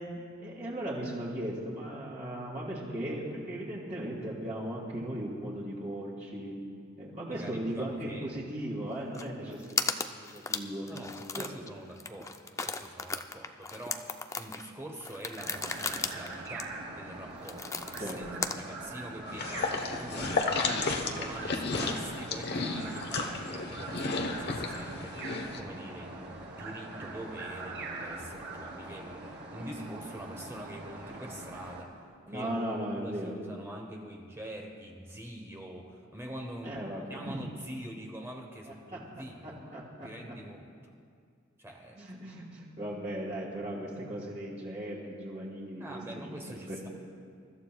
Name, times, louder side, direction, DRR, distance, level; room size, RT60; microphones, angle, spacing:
voice 1, 0.0-6.5 7.0-9.9 10.2-10.9 11.3-11.5 18.0-18.2 29.6-29.9 32.3-33.3 36.6-37.4 38.9-39.0 39.4-40.3 41.9-46.0 46.3-46.9, right 1 dB, 35° right, -6 dB, 2.4 m, -37 dB
voice 2, 7.2-8.4 9.4-9.6 10.9-32.0 32.3-32.6 32.9-36.8 37.1-40.9 41.6-42.0 45.8-46.9, right 1 dB, 10° right, 1 dB, 1.0 m, -45 dB
sound 1, 9.1-9.3 9.5-11.7 12.0-18.6, left 4 dB, 15° left, 0.5 m, -36 dB
sound 2, 15.4-31.8, right 2 dB, 60° right, 2.5 m, -43 dB
sound 3, 19.3-25.6, left 3 dB, 55° left, 1.0 m, -33 dB
27.5 x 14.0 x 2.3 m, 2.2 s
head